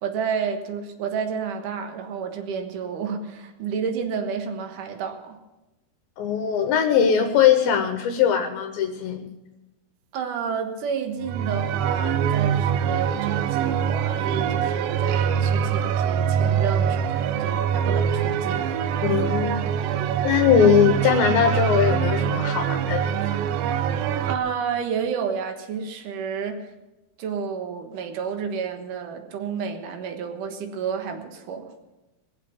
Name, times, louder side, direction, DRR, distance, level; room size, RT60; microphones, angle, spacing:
voice 1, 0.0-5.4 10.1-18.9 24.3-26.7 27.2-31.7, right 6 dB, 65° right, 6 dB, 2.6 m, -30 dB
voice 2, 6.2-9.3 19.0-19.6 20.2-23.4, left 8 dB, 75° left, 5 dB, 2.7 m, -20 dB
sound 1, 11.2-24.4, right 8 dB, 80° right, 2.2 m, -24 dB
21.5 x 7.5 x 7.1 m, 1.0 s
omnidirectional pair, 4.5 m